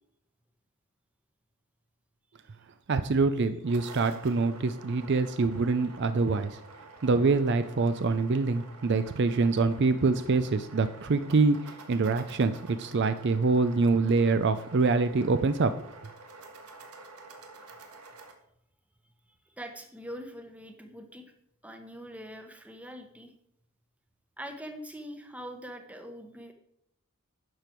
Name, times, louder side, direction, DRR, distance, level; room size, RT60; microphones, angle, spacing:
voice 1, 2.9-6.6 7.0-15.7, right 3 dB, 50° right, 11 dB, 0.4 m, -25 dB
sound 1, 3.4-18.3, right 3 dB, 85° right, 1.5 m, -49 dB
voice 2, 19.4-21.3 21.6-23.3 24.4-26.5, equal, 5° right, 5 dB, 0.9 m, -43 dB
11.0 x 6.8 x 4.5 m, 0.73 s
head